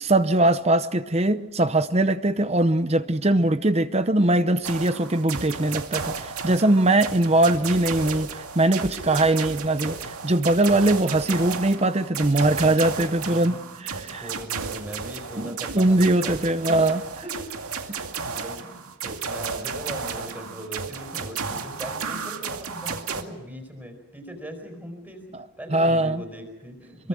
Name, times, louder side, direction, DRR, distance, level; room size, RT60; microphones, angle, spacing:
voice 1, 0.1-14.2 15.4-17.0 25.7-26.2 27.0-27.1, right 2 dB, 30° right, 11 dB, 0.8 m, -21 dB
sound 1, 4.6-23.2, right 5 dB, 80° right, 2.3 m, -33 dB
voice 2, 7.3-7.7 8.9-9.1 13.2-25.3 25.6-27.1, equal, 10° right, 5 dB, 5.1 m, -40 dB
25.5 x 23.5 x 6.4 m, 1.0 s
head